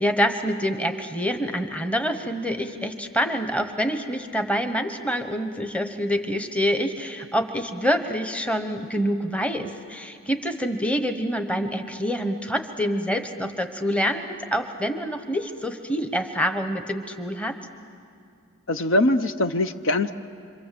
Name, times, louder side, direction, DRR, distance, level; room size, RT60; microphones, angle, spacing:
voice 1, 0.0-17.6, equal, 5° left, 7 dB, 1.0 m, -26 dB
voice 2, 18.7-20.1, left 1 dB, 60° left, 10 dB, 0.7 m, -22 dB
27.0 x 26.0 x 7.7 m, 2.4 s
head